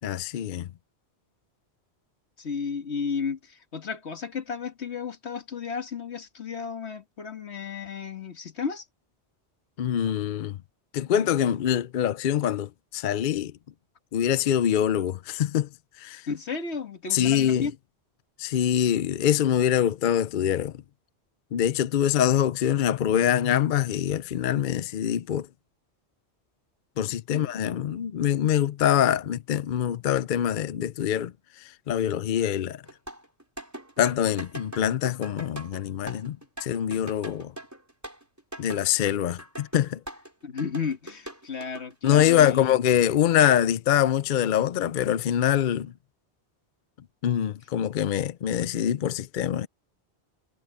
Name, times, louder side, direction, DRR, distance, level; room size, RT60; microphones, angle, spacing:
voice 1, 0.0-0.7 9.8-10.6 10.9-13.5 14.1-15.7 16.0-16.2 17.1-17.7 18.4-20.7 21.5-25.5 27.0-31.3 31.6-32.8 34.0-37.5 38.6-40.0 42.0-45.9 47.2-49.7, left 10 dB, 55° left, 0.6 m, -24 dB
voice 2, 2.4-8.9 16.3-17.8 27.3-27.5 40.4-42.8, left 5 dB, 80° left, 1.9 m, -33 dB
sound 1, 32.9-40.3 40.6-42.1, right 1 dB, 15° right, 4.8 m, -41 dB
omnidirectional pair, 1.1 m